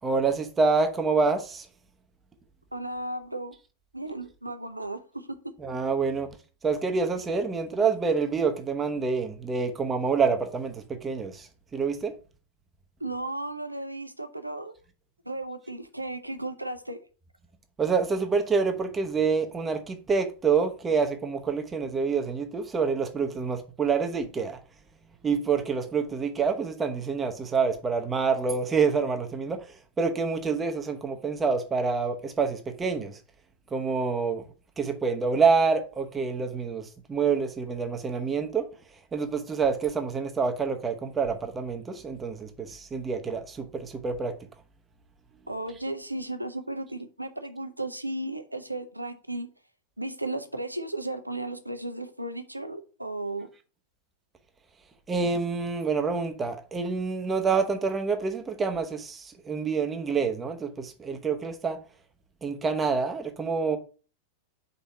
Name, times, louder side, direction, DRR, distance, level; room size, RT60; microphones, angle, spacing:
voice 1, 0.0-1.7 5.6-6.3 6.6-12.1 17.8-24.6 25.2-33.2 33.7-34.4 34.8-38.6 39.1-44.3 55.1-61.8 62.4-63.8, right 5 dB, 15° right, 1.0 m, -27 dB
voice 2, 2.7-3.6 3.9-5.5 13.0-14.7 15.3-17.0 45.5-49.5 50.0-53.5, right 2 dB, 85° right, 0.7 m, -35 dB
5.4 x 4.2 x 5.6 m
figure-of-eight pair, 90°, 0 cm